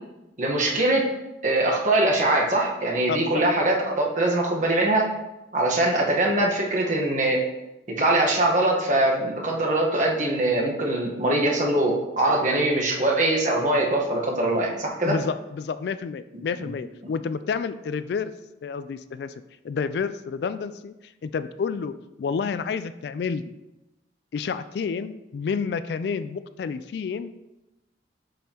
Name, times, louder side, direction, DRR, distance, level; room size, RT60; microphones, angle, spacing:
voice 1, 0.4-1.0 1.4-5.1 5.5-7.4 8.0-15.1 16.6-16.7, right 1 dB, 45° right, -1 dB, 1.2 m, -22 dB
voice 2, 3.1-3.4 15.0-18.3 18.6-19.3 19.6-23.6 24.3-27.3, left 5 dB, 60° left, 12 dB, 0.3 m, -30 dB
7.4 x 5.4 x 2.9 m, 0.97 s
head